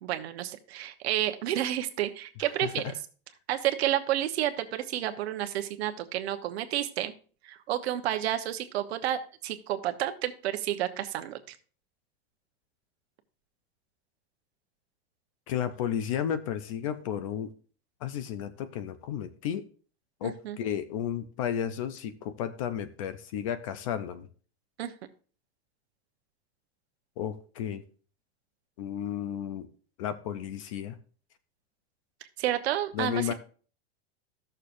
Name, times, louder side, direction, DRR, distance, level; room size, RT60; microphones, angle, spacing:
voice 1, 0.0-2.8 3.5-7.1 7.4-11.6 20.2-20.6 24.8-24.9 32.4-33.3, right 12 dB, 80° right, 8 dB, 1.1 m, -30 dB
voice 2, 2.6-2.9 15.5-17.5 18.0-19.6 20.2-24.3 27.2-27.8 28.8-29.7 30.0-31.0 32.9-33.3, left 9 dB, 35° left, 12 dB, 0.4 m, -33 dB
14.5 x 6.6 x 2.6 m, 0.40 s
supercardioid pair, 180°, 32 cm